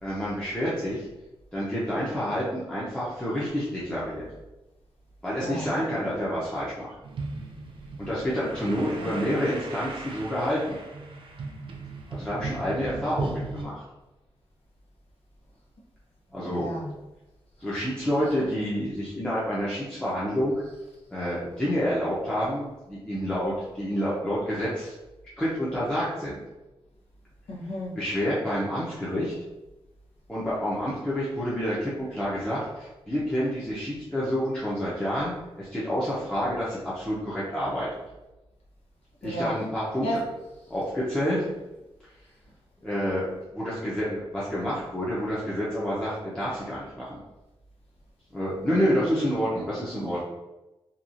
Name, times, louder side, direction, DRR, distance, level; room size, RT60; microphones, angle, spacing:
voice 1, 0.0-1.1 1.5-4.2 5.2-6.9 8.0-10.8 12.1-13.8 16.3-16.7 17.6-20.6 21.1-24.9 25.4-26.3 28.0-29.3 30.3-37.9 39.2-40.2 40.7-41.5 42.8-47.2 48.3-50.2, equal, 10° left, -8 dB, 0.6 m, -28 dB
voice 2, 5.4-5.7 8.8-9.1 16.4-16.9 27.5-28.0 39.2-39.5 40.0-40.3, equal, 85° left, -4 dB, 0.8 m, -32 dB
sound 1, 7.0-13.6, right 3 dB, 60° right, 0.4 m, -37 dB
2.8 x 2.3 x 2.5 m, 1.0 s
wide cardioid pair, 110°, 10 cm